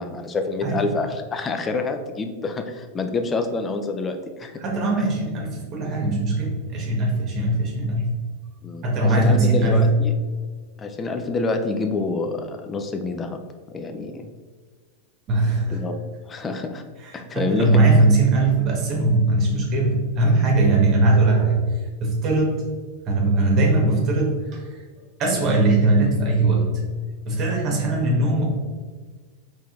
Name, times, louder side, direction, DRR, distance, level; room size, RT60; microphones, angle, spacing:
voice 1, 0.0-4.5 8.6-10.1 10.8-13.4 13.7-14.3 15.7-16.0 16.3-16.8 17.1-17.8, left 3 dB, 20° left, 6 dB, 0.5 m, -27 dB
voice 2, 4.6-8.2 8.8-9.9 15.3-15.8 17.0-21.7 22.0-22.6 23.1-24.8 25.2-26.8 27.3-28.4, right 2 dB, 40° right, -1 dB, 1.2 m, -20 dB
4.2 x 3.3 x 3.6 m, 1.5 s
hypercardioid pair, 105°, 0 cm